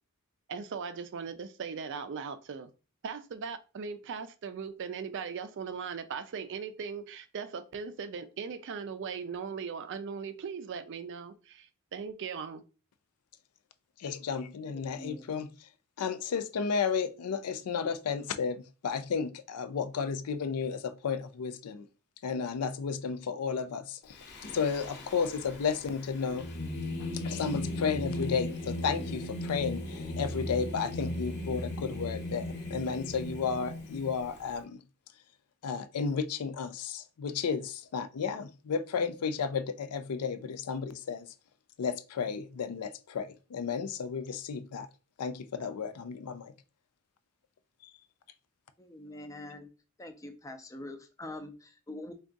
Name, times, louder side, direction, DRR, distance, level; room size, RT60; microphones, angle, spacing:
voice 1, 0.5-2.7 3.0-12.6, right 6 dB, 55° right, 0.4 m, -39 dB
voice 2, 14.0-15.5 16.0-21.9 22.2-24.2 24.5-26.5 27.1-34.8 35.6-41.3 41.8-44.9 45.2-46.5, left 6 dB, 80° left, 0.4 m, -33 dB
voice 3, 14.6-15.4 48.8-49.7 50.0-52.1, left 1 dB, 15° left, 0.4 m, -44 dB
Singing, 24.1-34.6, left 1 dB, 50° left, 0.8 m, -37 dB
3.5 x 2.3 x 3.8 m
head